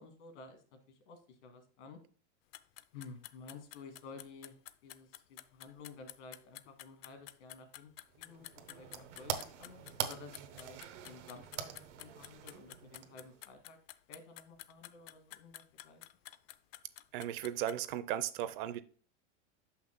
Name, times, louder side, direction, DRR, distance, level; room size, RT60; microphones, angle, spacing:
voice 1, 0.0-2.0 2.9-4.5 4.8-13.8 14.1-16.0, left 4 dB, 80° left, 2.1 m, -53 dB
sound 1, 2.5-17.9, left 16 dB, 55° left, 0.5 m, -51 dB
sound 2, 8.1-13.5, right 9 dB, 90° right, 1.1 m, -44 dB
voice 2, 17.1-18.8, right 12 dB, 50° right, 0.5 m, -36 dB
6.4 x 5.8 x 3.8 m
supercardioid pair, 160°, 35 cm